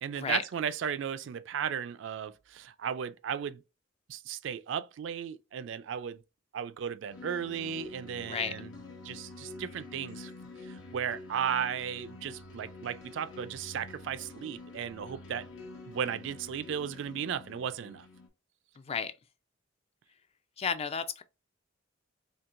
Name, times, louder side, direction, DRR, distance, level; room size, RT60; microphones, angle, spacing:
voice 1, 0.0-3.6 4.1-6.2 6.5-8.7 9.0-10.3 10.7-15.5 15.9-18.1, right 8 dB, 65° right, 0.3 m, -35 dB
sound 1, 7.1-18.3, left 2 dB, 75° left, 1.1 m, -47 dB
voice 2, 8.2-8.5 18.8-19.1 20.6-21.2, left 6 dB, 30° left, 0.3 m, -32 dB
4.5 x 2.8 x 2.4 m
head